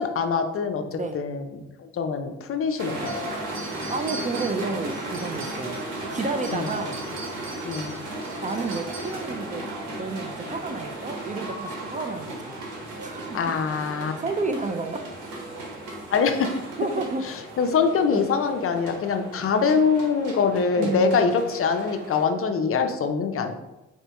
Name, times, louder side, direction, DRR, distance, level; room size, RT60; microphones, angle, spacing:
voice 1, 0.0-3.2 6.5-6.7 7.6-7.9 13.3-14.1 16.1-16.5 17.6-23.6, left 5 dB, 45° left, 7 dB, 0.5 m, -24 dB
sound 1, 2.8-22.2, right 1 dB, 90° right, 1.2 m, -36 dB
sound 2, 3.1-6.0 6.3-9.3, right 3 dB, 45° right, 1.0 m, -42 dB
voice 2, 3.9-5.8 6.1-7.0 8.4-9.7 10.0-12.5 13.0-13.4 14.2-15.0 16.8-17.3 18.1-18.3 20.7-21.3, right 3 dB, 25° right, 6 dB, 0.3 m, -30 dB
4.2 x 2.7 x 4.6 m, 0.99 s
cardioid pair, 90°, 30 cm